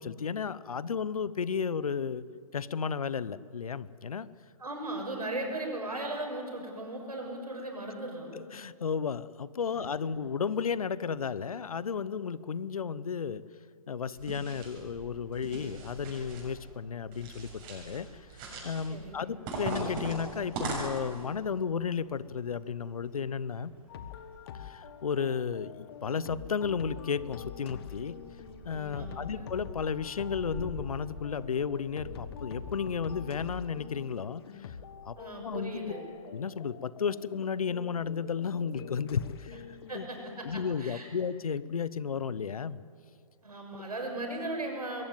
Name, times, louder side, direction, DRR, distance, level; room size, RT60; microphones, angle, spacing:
voice 1, 0.0-2.2 2.5-4.3 8.3-13.4 13.9-23.7 24.5-28.2 28.6-34.8 35.0-35.2 35.4-35.9 36.3-39.6 39.9-40.1 40.4-42.8 43.7-43.8, left 6 dB, 70° left, 18 dB, 0.9 m, -33 dB
voice 2, 4.6-8.3 9.7-9.9 18.9-19.4 28.9-29.5 35.2-36.0 39.9-41.1 43.4-45.0, right 2 dB, 85° right, 2 dB, 6.7 m, -37 dB
sound 1, 14.2-14.8 15.3-16.5 17.1-18.0 18.3-18.9 19.5-21.2, right 2 dB, 25° right, 6.9 m, -38 dB
sound 2, 14.8-32.7, equal, 10° right, 7.6 m, -51 dB
sound 3, 23.9-40.6, left 8 dB, 40° left, 1.4 m, -46 dB
22.0 x 16.5 x 9.3 m, 2.4 s
figure-of-eight pair, 140°, 19 cm